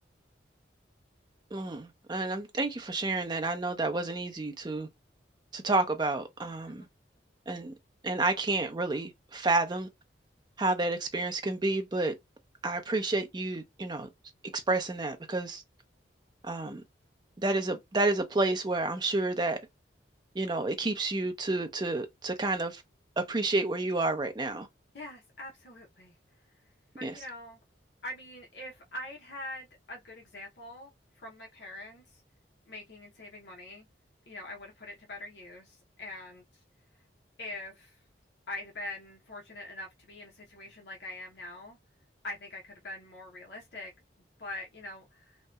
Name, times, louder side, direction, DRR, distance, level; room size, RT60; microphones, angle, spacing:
voice 1, 1.5-4.9 5.5-6.9 7.5-7.7 8.0-9.9 10.6-12.1 12.6-14.1 14.7-15.6 16.4-16.8 17.4-19.6 20.3-22.8 23.2-24.7 27.0-27.2, right 2 dB, 25° right, 0.4 m, -30 dB
voice 2, 24.9-26.1 27.0-27.6 28.0-32.2 32.7-33.9 34.3-36.4 37.4-38.0 38.5-41.8 42.2-43.9 44.4-45.4, left 1 dB, 65° left, 0.7 m, -43 dB
2.7 x 2.1 x 2.2 m
head